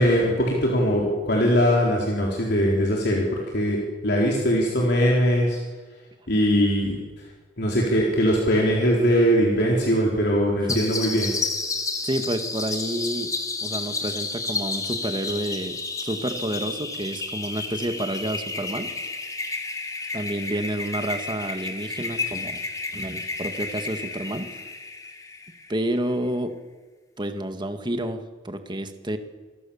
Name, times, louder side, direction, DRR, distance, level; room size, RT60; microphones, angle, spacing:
voice 1, 0.0-5.6 6.3-7.3 7.6-11.3, equal, 60° left, -2 dB, 4.2 m, -21 dB
sound 1, 10.7-25.9, left 3 dB, 20° left, 2.8 m, -31 dB
voice 2, 12.0-13.3 13.6-18.9 20.1-22.6 22.9-24.5 25.7-26.5 27.2-29.2, right 1 dB, 25° right, 7 dB, 1.9 m, -29 dB
27.5 x 22.5 x 7.2 m, 1.4 s
head